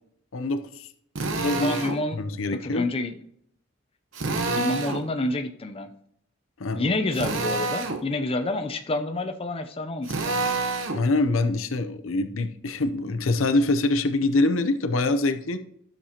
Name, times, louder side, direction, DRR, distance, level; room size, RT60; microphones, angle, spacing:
voice 1, 0.3-0.9 1.4-1.7 2.1-2.9 6.6-6.9 10.6-15.6, left 2 dB, 75° left, 8 dB, 0.7 m, -25 dB
Drill, 1.1-2.0 4.1-5.0 7.1-8.0 10.0-11.0, right 3 dB, 70° right, 1.0 m, -27 dB
voice 2, 1.6-2.2 2.6-3.1 4.6-5.9 6.8-10.4, left 2 dB, 30° left, 6 dB, 0.6 m, -28 dB
12.5 x 6.7 x 2.9 m, 0.68 s
head